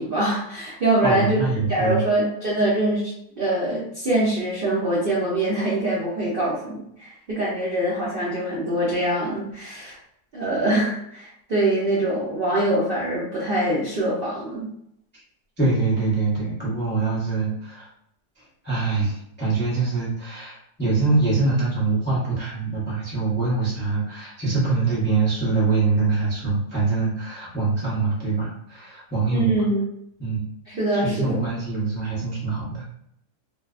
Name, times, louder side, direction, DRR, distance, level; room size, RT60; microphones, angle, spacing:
voice 1, 0.0-1.4 1.7-10.0 10.3-14.7 29.3-29.8 30.7-31.3, right 1 dB, 55° right, -8 dB, 0.6 m, -24 dB
voice 2, 1.0-2.0 15.6-17.9 18.4-29.6 30.2-30.4 31.0-32.8, right 3 dB, 10° left, -8 dB, 0.5 m, -24 dB
2.6 x 2.1 x 2.3 m, 0.72 s
omnidirectional pair, 1.6 m